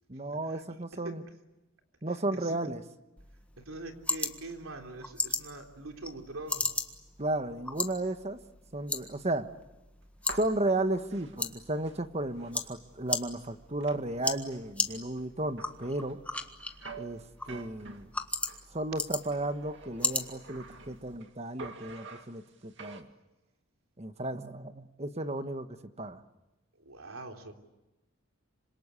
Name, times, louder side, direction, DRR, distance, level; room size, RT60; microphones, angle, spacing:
voice 1, 0.1-1.2 2.0-2.8 7.2-8.4 8.7-9.5 10.3-16.2 16.9-18.1 18.7-23.1 24.0-26.2, right 2 dB, 30° right, 9 dB, 1.3 m, -34 dB
sound 1, 3.2-21.2, left 2 dB, 5° left, 1.5 m, -38 dB
voice 2, 3.6-6.7 26.8-27.5, right 2 dB, 80° right, 3 dB, 3.6 m, -43 dB
sound 2, 10.0-12.6 13.1-13.2 13.4-18.7 19.2-21.3 21.6-23.0, right 4 dB, 60° right, 2.3 m, -48 dB
26.5 x 26.5 x 8.4 m, 1.0 s
head